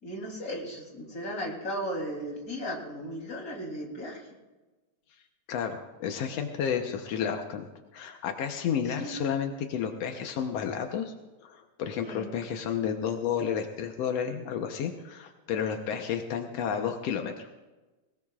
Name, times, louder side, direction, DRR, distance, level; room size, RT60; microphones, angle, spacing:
voice 1, 0.0-4.3 8.7-9.2 12.0-12.3, equal, 25° left, -1 dB, 3.2 m, -36 dB
voice 2, 5.5-7.7 7.9-11.1 11.4-17.5, left 7 dB, 85° left, 5 dB, 1.4 m, -31 dB
20.5 x 20.5 x 2.4 m, 1.2 s
omnidirectional pair, 4.3 m